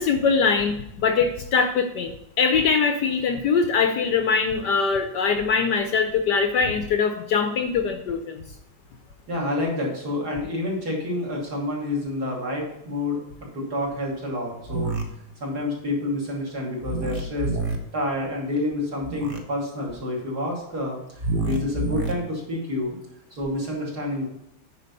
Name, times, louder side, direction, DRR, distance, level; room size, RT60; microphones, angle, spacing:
voice 1, 0.0-8.4, left 5 dB, 65° left, 7 dB, 1.2 m, -22 dB
voice 2, 9.3-13.2 13.5-14.9 15.4-23.0 23.3-24.2, left 1 dB, 50° right, -3 dB, 3.2 m, -28 dB
sound 1, 14.7-15.0 16.8-17.8 19.0-19.4 21.2-22.1, right 2 dB, 35° right, 1.0 m, -27 dB
9.6 x 5.1 x 5.3 m, 0.82 s
omnidirectional pair, 2.2 m